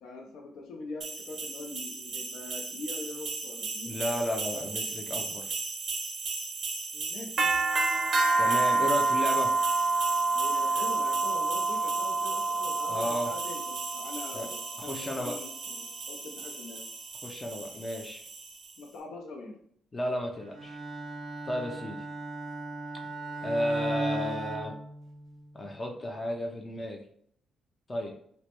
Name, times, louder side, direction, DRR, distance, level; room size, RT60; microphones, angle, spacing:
voice 1, 0.0-3.9 6.9-7.5 10.3-16.8 18.8-19.6, left 3 dB, 75° left, 2 dB, 0.6 m, -43 dB
sound 1, 1.0-18.7, right 3 dB, 50° right, 0.5 m, -30 dB
voice 2, 3.8-5.5 8.4-9.5 12.9-13.3 14.3-14.5 14.8-15.4 17.2-18.2 19.9-20.8 21.5-22.0 23.4-24.7 25.5-27.0 27.9-28.1, left 1 dB, 25° left, 1 dB, 0.4 m, -33 dB
Bowed string instrument, 20.5-25.5, right 2 dB, 90° right, 0.6 m, -36 dB
3.0 x 2.2 x 2.9 m, 0.65 s
cardioid pair, 115°, 0 cm